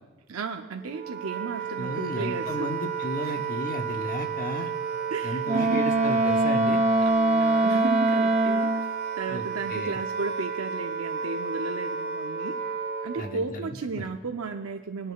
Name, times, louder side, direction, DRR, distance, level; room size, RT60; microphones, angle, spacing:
voice 1, 0.3-2.7 3.2-3.3 5.1-5.8 7.0-8.9 9.2-12.6 13.0-15.1, right 4 dB, 70° right, 4 dB, 0.5 m, -34 dB
Wind instrument woodwind instrument, 0.8-13.4, right 6 dB, 55° right, 1.8 m, -32 dB
voice 2, 1.8-4.7 5.2-6.8 9.3-10.0 13.2-14.0, left 1 dB, 40° left, 5 dB, 0.9 m, -34 dB
Wind instrument woodwind instrument 2, 5.4-8.9, right 2 dB, 30° right, 0.6 m, -23 dB
23.0 x 10.0 x 2.3 m, 1.3 s
head